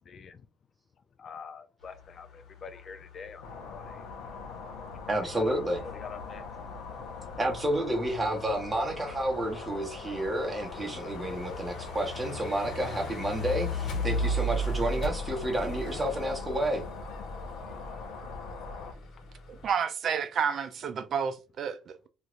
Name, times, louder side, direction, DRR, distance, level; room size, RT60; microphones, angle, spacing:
voice 1, 0.1-0.4 1.2-3.9 5.5-5.6 6.0-6.4, left 6 dB, 40° left, 0.4 m, -45 dB
sound 1, 1.8-19.7, equal, 75° left, 1.1 m, -38 dB
sound 2, 3.4-18.9, left 4 dB, 90° left, 0.8 m, -42 dB
voice 2, 5.1-5.8 7.4-16.8, right 1 dB, 15° right, 1.1 m, -30 dB
voice 3, 19.5-22.1, right 7 dB, 55° right, 0.5 m, -30 dB
2.6 x 2.5 x 3.1 m
cardioid pair, 105°, 0 cm